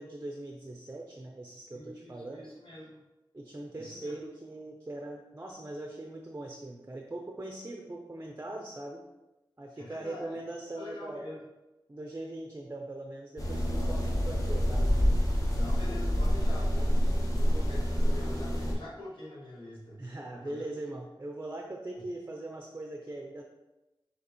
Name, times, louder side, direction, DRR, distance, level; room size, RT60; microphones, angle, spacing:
voice 1, 0.0-2.4 3.3-9.0 9.6-11.3 11.9-14.9 20.0-23.4, right 2 dB, 25° right, 1 dB, 0.5 m, -41 dB
voice 2, 1.7-3.0 3.7-4.2 9.8-10.4 10.8-11.4 15.5-20.0 20.3-20.6 22.0-22.1, left 1 dB, 70° left, -6 dB, 1.5 m, -45 dB
sound 1, 13.4-18.7, equal, 40° left, 0.9 m, -27 dB
6.4 x 2.8 x 2.9 m, 1.0 s
wide cardioid pair, 75°, 9 cm